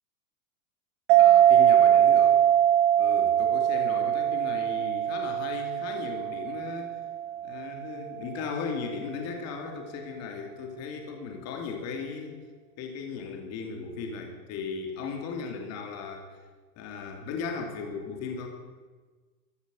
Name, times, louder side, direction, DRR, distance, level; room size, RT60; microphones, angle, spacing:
sound 1, 1.1-8.1, right 11 dB, 50° right, 1.3 m, -22 dB
voice 1, 1.2-2.4 3.0-6.9 7.4-12.3 12.8-16.3 16.8-18.5, left 5 dB, 35° left, 3 dB, 2.6 m, -37 dB
14.5 x 12.0 x 8.1 m, 1.4 s
supercardioid pair, 150°, 43 cm